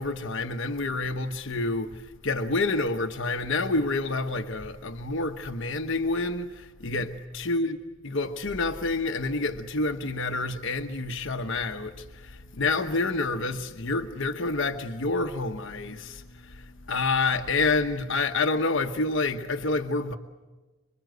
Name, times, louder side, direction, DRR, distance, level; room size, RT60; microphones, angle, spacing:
voice 1, 0.0-7.8 8.0-20.2, left 3 dB, 55° left, 1.1 m, -28 dB
26.0 x 23.5 x 7.9 m
head